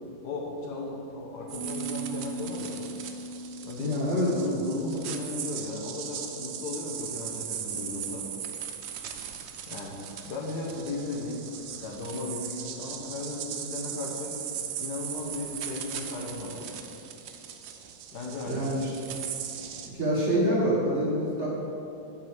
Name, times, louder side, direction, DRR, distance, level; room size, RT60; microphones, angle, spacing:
voice 1, 0.2-2.8 3.6-4.1 4.3-8.3 9.7-11.4 11.8-14.4 14.8-16.8 18.1-18.7, left 2 dB, 65° left, -2 dB, 1.6 m, -36 dB
Piano, 1.5-7.1, right 3 dB, 25° left, 0.8 m, -41 dB
sound 1, 1.5-19.9, right 9 dB, 90° right, 1.3 m, -39 dB
voice 2, 3.8-4.3 18.5-18.9 19.9-21.5, equal, 40° right, -5 dB, 1.9 m, -26 dB
8.0 x 4.7 x 7.2 m, 2.8 s
omnidirectional pair, 1.9 m